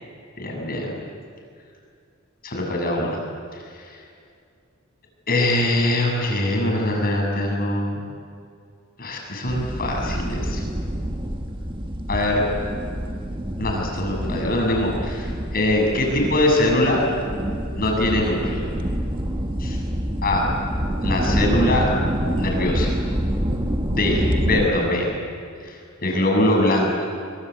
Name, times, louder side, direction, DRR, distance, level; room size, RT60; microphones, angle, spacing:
voice 1, 0.4-0.9 2.4-3.2 3.5-4.0 5.3-8.1 9.0-10.6 12.1-12.4 13.6-17.0 17.8-18.6 19.6-19.8 20.2-20.4 21.0-21.9 22.4-23.0 23.9-25.1 25.6-27.1, left 1 dB, 45° left, 0 dB, 7.7 m, -22 dB
sound 1, 9.5-24.7, equal, 25° right, 1.6 m, -26 dB
25.5 x 24.5 x 8.5 m, 2.3 s
head